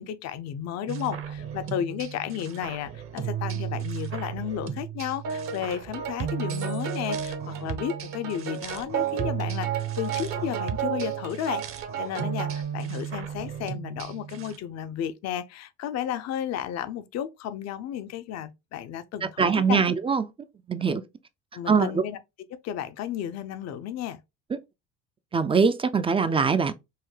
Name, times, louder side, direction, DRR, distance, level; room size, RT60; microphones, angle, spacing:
voice 1, 0.0-11.6 12.0-19.8 21.5-22.2 22.6-24.2, left 10 dB, 55° left, 0.6 m, -33 dB
sound 1, 0.9-14.6, right 9 dB, 45° right, 0.8 m, -35 dB
sound 2, 5.2-12.6, right 8 dB, 70° right, 1.1 m, -33 dB
voice 2, 19.4-20.3 20.7-21.0 21.7-22.0 25.3-26.7, right 5 dB, 20° right, 0.4 m, -22 dB
5.6 x 2.1 x 3.2 m
supercardioid pair, 100°, 31 cm